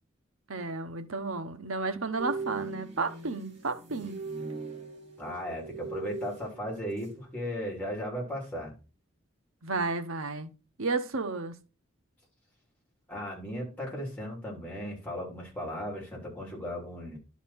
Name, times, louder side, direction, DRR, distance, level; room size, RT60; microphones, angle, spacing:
voice 1, 0.5-4.2 9.6-10.5 10.8-11.5, right 3 dB, 90° right, 1.0 m, -32 dB
sound 1, 2.2-7.3 7.6-7.9, right 3 dB, 30° right, 2.6 m, -40 dB
voice 2, 5.2-8.7 13.1-17.2, equal, 10° left, 3.1 m, -36 dB
11.5 x 4.2 x 4.1 m
head